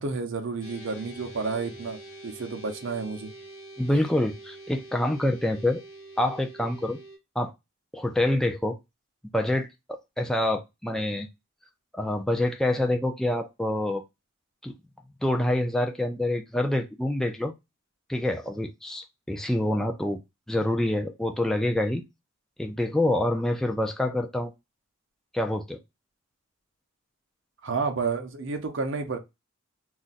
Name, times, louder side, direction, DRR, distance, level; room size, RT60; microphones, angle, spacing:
voice 1, 0.0-2.0 2.2-3.3 3.9-4.0 27.6-29.2, right 4 dB, 60° right, 0.6 m, -30 dB
sound 1, 0.6-7.2, right 2 dB, 40° left, 1.2 m, -45 dB
voice 2, 3.8-5.8 6.2-7.0 7.4-7.5 7.9-8.8 9.3-9.7 10.2-11.3 11.9-14.0 14.6-14.7 15.2-17.5 18.1-20.2 20.5-22.0 22.6-24.5 25.3-25.8, left 1 dB, 5° left, 0.3 m, -26 dB
2.4 x 2.1 x 3.9 m
head